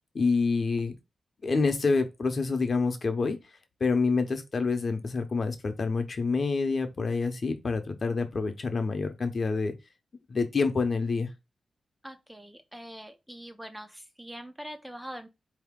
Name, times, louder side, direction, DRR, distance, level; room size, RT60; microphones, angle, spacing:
voice 1, 0.1-0.9 1.4-3.4 3.8-9.7 10.3-11.3, left 4 dB, 40° left, 0.7 m, -27 dB
voice 2, 12.0-15.3, equal, 5° right, 0.3 m, -43 dB
4.2 x 2.8 x 3.6 m
wide cardioid pair, 165°, 0 cm